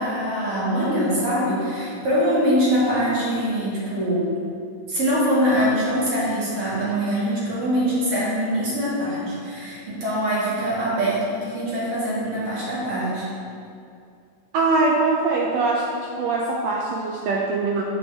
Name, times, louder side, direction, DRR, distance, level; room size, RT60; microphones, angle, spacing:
voice 1, 0.0-4.3 4.9-13.3, equal, 50° right, -8 dB, 2.9 m, -23 dB
voice 2, 14.5-15.9 16.2-17.8, right 3 dB, 85° right, -1 dB, 1.5 m, -22 dB
8.4 x 8.1 x 3.6 m, 2.4 s
omnidirectional pair, 3.8 m